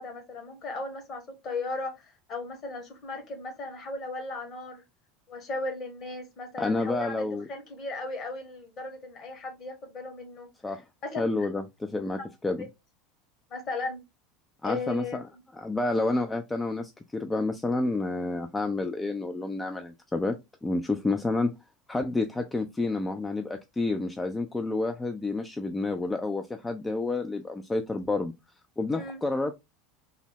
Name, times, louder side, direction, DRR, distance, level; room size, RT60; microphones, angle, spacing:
voice 1, 0.0-4.8 5.3-10.5 11.0-11.5 12.6-12.7 13.5-14.0 14.6-15.2 28.9-29.2, left 3 dB, 40° left, 1.2 m, -36 dB
voice 2, 6.6-7.5 10.6-10.8 11.2-12.7 14.6-15.2 15.5-20.4 20.6-21.5 21.9-28.3 28.8-29.5, left 2 dB, 15° left, 0.3 m, -29 dB
3.4 x 2.0 x 3.4 m
figure-of-eight pair, 75°, 0 cm